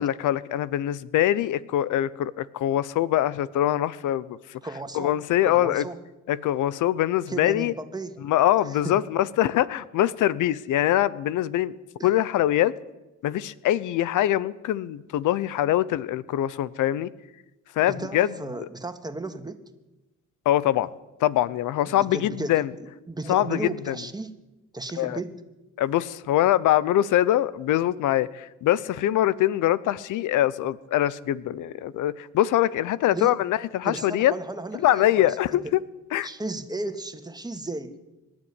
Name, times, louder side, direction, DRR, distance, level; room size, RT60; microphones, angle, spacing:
voice 1, 0.0-4.4 4.9-5.8 6.3-7.7 8.2-11.7 12.0-12.7 13.2-17.1 17.8-18.3 18.6-18.7 20.5-20.9 21.2-22.7 23.3-23.9 25.0-25.2 25.8-34.3 34.8-35.8 36.1-36.3, left 13 dB, 80° left, 19 dB, 0.8 m, -23 dB
voice 2, 4.6-5.1 5.4-6.0 7.3-8.2 8.6-9.0 12.0-12.1 17.9-19.6 21.9-24.4 24.7-25.4 33.1-33.3 33.8-35.7 36.2-37.9, right 2 dB, 15° right, 8 dB, 2.1 m, -35 dB
24.0 x 12.0 x 9.7 m, 1.0 s
cardioid pair, 90°, 30 cm